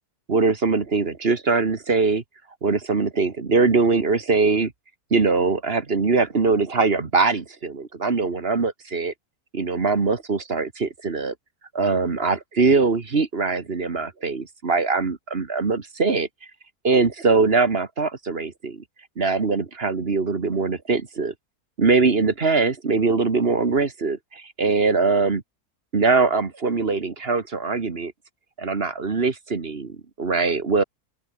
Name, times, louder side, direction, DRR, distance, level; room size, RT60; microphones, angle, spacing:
voice 1, 0.3-2.2 2.6-4.7 5.1-9.1 9.5-11.3 11.7-16.3 16.8-18.8 19.2-21.3 21.8-25.4 25.9-28.1 28.6-30.8, right 4 dB, 40° right, 1.9 m, -22 dB
open air
omnidirectional pair, 1.6 m